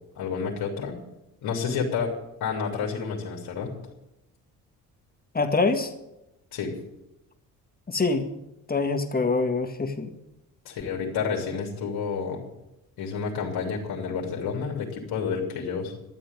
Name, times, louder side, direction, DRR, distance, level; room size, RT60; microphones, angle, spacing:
voice 1, 0.1-1.0 1.4-2.1 2.4-3.7 6.5-6.7 10.6-12.4 13.0-16.0, left 6 dB, 70° left, -1 dB, 3.0 m, -30 dB
voice 2, 5.3-5.9 7.9-8.3 8.7-10.1, left 3 dB, 25° left, 5 dB, 1.9 m, -24 dB
12.5 x 7.5 x 9.0 m, 0.90 s
supercardioid pair, 70°, 38 cm